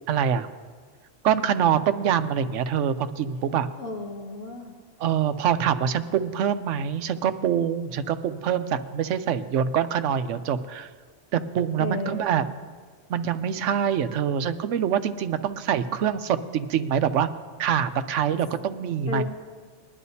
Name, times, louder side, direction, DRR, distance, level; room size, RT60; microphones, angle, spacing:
voice 1, 0.1-0.5 1.2-3.7 5.0-10.9 11.3-12.5 13.1-17.3 17.6-19.2, right 8 dB, 85° right, 11 dB, 1.0 m, -25 dB
voice 2, 3.8-4.8 11.8-12.4 19.1-19.2, left 3 dB, 90° left, -1 dB, 2.1 m, -33 dB
20.5 x 11.0 x 2.7 m, 1.5 s
omnidirectional pair, 1.2 m